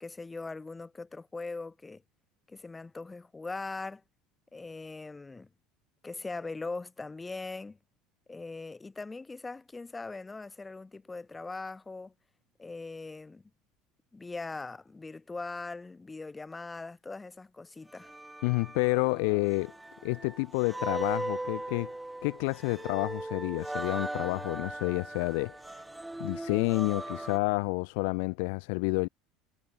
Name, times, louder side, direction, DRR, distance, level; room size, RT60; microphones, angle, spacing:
voice 1, 0.0-2.0 2.5-4.0 4.5-5.5 6.0-7.8 8.3-12.1 12.6-13.5 14.1-18.1, left 3 dB, 15° left, 1.7 m, -40 dB
sound 1, 17.9-27.4, right 1 dB, 10° right, 0.6 m, -39 dB
voice 2, 18.4-19.7 20.0-21.9 22.2-25.6 26.2-29.1, left 33 dB, 70° left, 0.4 m, -29 dB
hypercardioid pair, 75°, 0 cm